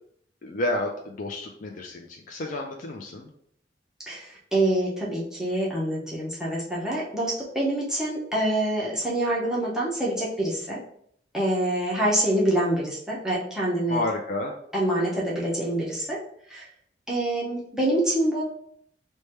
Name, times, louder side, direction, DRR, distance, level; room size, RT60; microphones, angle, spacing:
voice 1, 0.4-3.3 13.9-14.5, left 2 dB, 45° left, 1 dB, 0.4 m, -30 dB
voice 2, 4.1-10.8 11.3-14.0 14.7-16.2 16.5-16.6 17.1-18.4, right 1 dB, 5° right, -7 dB, 0.6 m, -26 dB
3.2 x 2.1 x 4.2 m, 0.68 s
head